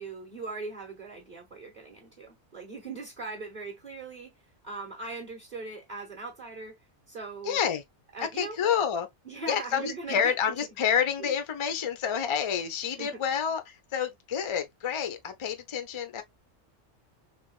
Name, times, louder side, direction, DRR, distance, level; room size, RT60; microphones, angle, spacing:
voice 1, 0.0-4.3 4.6-7.6 8.1-8.6 9.2-10.6 11.2-11.3 13.0-13.1, right 3 dB, 40° right, 1.2 m, -40 dB
voice 2, 7.4-7.8 8.2-9.1 9.5-16.2, left 8 dB, 50° left, 0.3 m, -29 dB
3.3 x 3.1 x 2.2 m
omnidirectional pair, 1.3 m